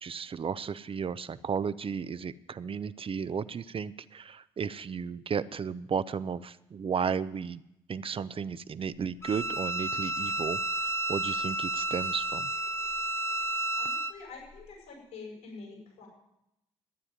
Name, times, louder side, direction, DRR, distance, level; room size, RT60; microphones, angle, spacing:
voice 1, 0.0-7.6 7.9-10.6 11.1-12.5, right 6 dB, 40° right, 14 dB, 0.7 m, -34 dB
Bowed string instrument, 9.2-14.1, right 2 dB, 20° left, 1.1 m, -31 dB
voice 2, 13.7-16.1, left 4 dB, 75° left, -1 dB, 7.2 m, -46 dB
13.0 x 9.6 x 9.3 m, 0.85 s
hypercardioid pair, 45°, 14 cm